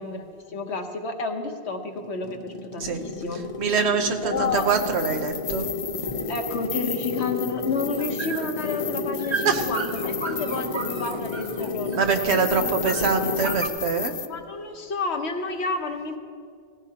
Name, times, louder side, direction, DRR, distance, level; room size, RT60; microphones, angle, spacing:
voice 1, 0.0-3.4 4.2-4.6 6.3-12.5 12.8-13.1 14.2-16.2, left 4 dB, 80° left, 4 dB, 1.3 m, -30 dB
sound 1, 2.0-13.7, left 3 dB, 40° left, 0.7 m, -32 dB
sound 2, 3.0-13.7, right 5 dB, 35° right, 0.5 m, -37 dB
voice 2, 3.6-5.7 9.4-9.7 11.9-14.2, right 5 dB, 80° right, 6 dB, 1.2 m, -24 dB
sound 3, 4.5-14.3, left 7 dB, 55° left, 0.4 m, -35 dB
18.0 x 15.0 x 2.9 m, 2.2 s
omnidirectional pair, 1.1 m